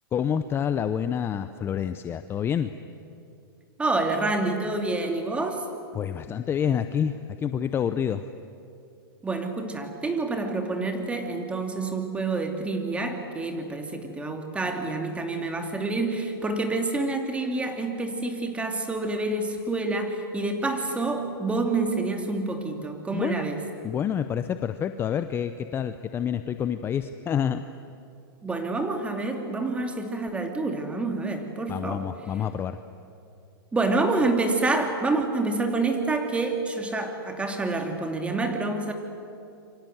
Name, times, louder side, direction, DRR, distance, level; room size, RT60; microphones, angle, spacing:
voice 1, 0.1-2.7 5.9-8.3 23.1-23.4 23.8-27.6 31.7-32.8, left 8 dB, 20° left, 10 dB, 0.7 m, -28 dB
voice 2, 3.8-5.7 9.2-23.6 28.4-32.1 33.7-38.9, right 3 dB, 10° right, 4 dB, 2.8 m, -27 dB
27.5 x 24.5 x 8.0 m, 2.6 s
hypercardioid pair, 135°, 12 cm